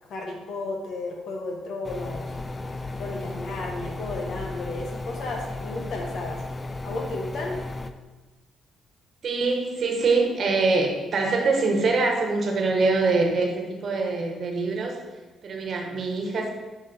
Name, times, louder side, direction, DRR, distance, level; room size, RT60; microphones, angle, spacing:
voice 1, 0.0-2.3 3.0-6.4 6.8-7.6, left 2 dB, 65° left, 1 dB, 1.4 m, -33 dB
sound 1, 1.8-7.9, left 2 dB, 25° left, 0.4 m, -35 dB
voice 2, 9.2-15.0 15.4-16.5, right 3 dB, 55° right, 2 dB, 1.3 m, -24 dB
5.3 x 5.0 x 5.2 m, 1.2 s
cardioid pair, 90°, 0 cm